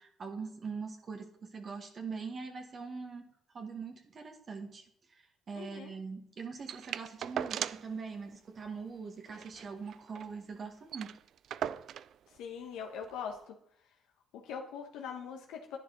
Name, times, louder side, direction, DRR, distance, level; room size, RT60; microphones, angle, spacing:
voice 1, 0.0-11.1, right 5 dB, 45° right, 3 dB, 1.7 m, -42 dB
voice 2, 5.5-5.9 12.4-13.5 14.3-15.8, left 7 dB, 85° left, 2 dB, 1.2 m, -42 dB
sound 1, 6.7-8.0 8.3-8.4 8.6-8.8 9.2-10.3 10.6-10.7 10.9-12.1 13.0-13.1, right 9 dB, 65° right, 0.4 m, -39 dB
11.0 x 9.5 x 4.0 m, 0.72 s
cardioid pair, 80°, 0 cm